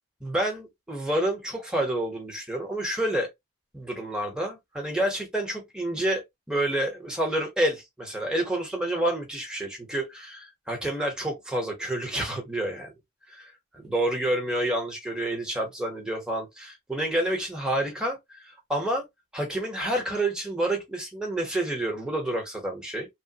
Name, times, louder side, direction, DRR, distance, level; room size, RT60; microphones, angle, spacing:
voice 1, 0.2-3.3 3.7-12.9 13.3-19.0 19.3-23.1, right 1 dB, 5° right, 1.0 m, -29 dB
3.1 x 2.2 x 2.8 m
head